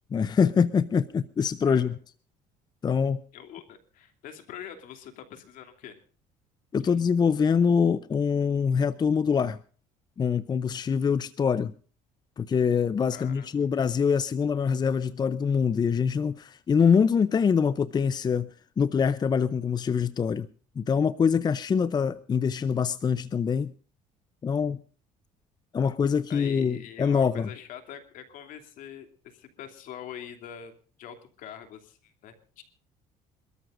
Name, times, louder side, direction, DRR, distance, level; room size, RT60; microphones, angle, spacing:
voice 1, 0.1-2.0 2.8-3.2 6.7-9.6 10.2-11.7 12.4-20.5 20.8-23.7 24.4-24.8 25.7-27.5, left 6 dB, 30° left, 15 dB, 0.6 m, -24 dB
voice 2, 3.3-6.0 13.1-13.6 26.3-30.7 31.0-32.6, left 9 dB, 70° left, 6 dB, 2.9 m, -44 dB
27.0 x 13.5 x 2.6 m, 0.41 s
cardioid pair, 105°, 14 cm